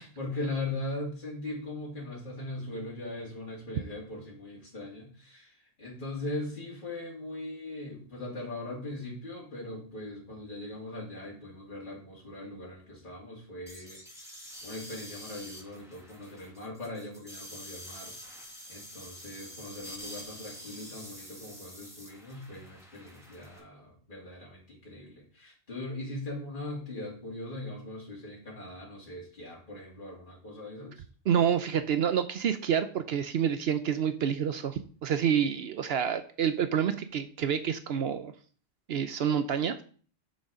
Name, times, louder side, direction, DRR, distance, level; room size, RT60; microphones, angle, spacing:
voice 1, 0.0-5.5 5.8-14.3 14.6-18.1 18.7-31.0, left 2 dB, 50° left, -5 dB, 2.7 m, -40 dB
sound 1, 13.7-23.6, equal, 5° right, 2.0 m, -47 dB
voice 2, 31.3-38.3 38.9-39.8, right 8 dB, 70° right, 10 dB, 0.9 m, -28 dB
6.6 x 6.4 x 4.9 m, 0.43 s
omnidirectional pair, 1.1 m